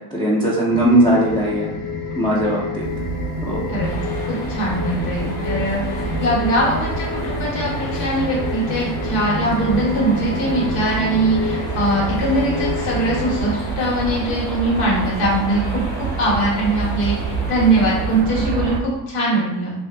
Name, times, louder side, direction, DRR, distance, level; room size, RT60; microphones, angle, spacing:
voice 1, 0.1-1.7 2.2-2.8 3.4-3.6, right 1 dB, 10° left, -7 dB, 0.3 m, -18 dB
sound 1, 0.7-13.5, left 4 dB, 45° left, 0.7 m, -29 dB
sound 2, 2.8-18.8, right 6 dB, 60° right, 0.5 m, -28 dB
sound 3, 3.8-18.2, left 1 dB, 75° left, 1.1 m, -35 dB
voice 2, 4.3-19.7, right 1 dB, 90° left, -5 dB, 1.5 m, -21 dB
2.6 x 2.5 x 3.3 m, 0.95 s
cardioid pair, 115°, 50 cm